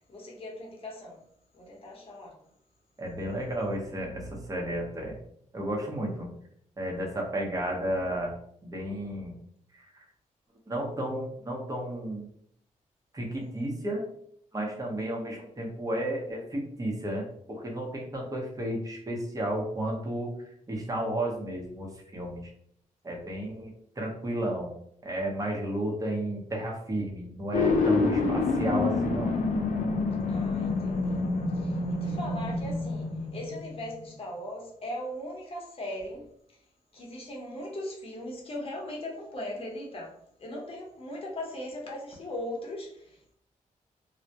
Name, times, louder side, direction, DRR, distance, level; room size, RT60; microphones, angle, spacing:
voice 1, 0.1-1.2 1.5-2.3 30.3-36.2 36.9-40.1 40.4-43.3, left 1 dB, 45° left, -2 dB, 0.8 m, -39 dB
voice 2, 3.0-5.2 5.5-6.3 6.8-8.3 8.6-9.3 9.7-10.0 10.7-12.3 13.1-14.0 14.5-20.3 20.7-22.5 23.0-24.7 25.0-29.4, right 1 dB, 25° right, -1 dB, 0.8 m, -32 dB
sound 1, 27.5-33.7, left 3 dB, 70° left, 0.4 m, -27 dB
2.1 x 2.1 x 2.7 m, 0.68 s
cardioid pair, 80°, 14 cm